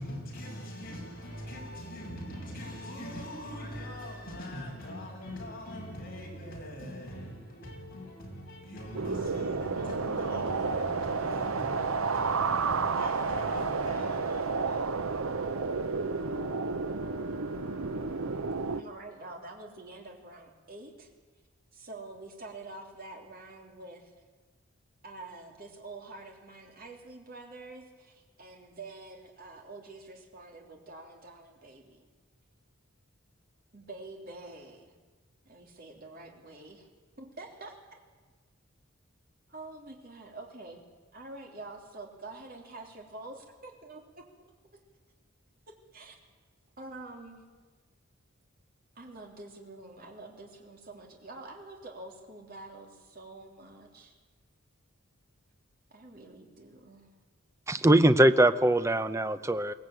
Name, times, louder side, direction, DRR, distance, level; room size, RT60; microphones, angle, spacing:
voice 1, 0.0-17.5, equal, 45° left, 7.4 m, -42 dB
sound 1, 8.9-18.8, right 4 dB, 75° right, 0.8 m, -31 dB
sound 2, 9.1-18.6, left 6 dB, 60° right, 5.8 m, -47 dB
voice 2, 18.8-21.1 21.7-24.1 25.0-32.1 33.7-34.9 35.4-36.9 37.2-37.8 39.5-40.8 41.1-44.5 44.7-44.8 45.7-46.2 46.8-47.4 48.9-54.2 55.9-57.1, right 2 dB, 45° right, 3.2 m, -47 dB
voice 3, 57.7-59.7, right 1 dB, 15° right, 0.7 m, -22 dB
22.5 x 17.5 x 9.1 m
head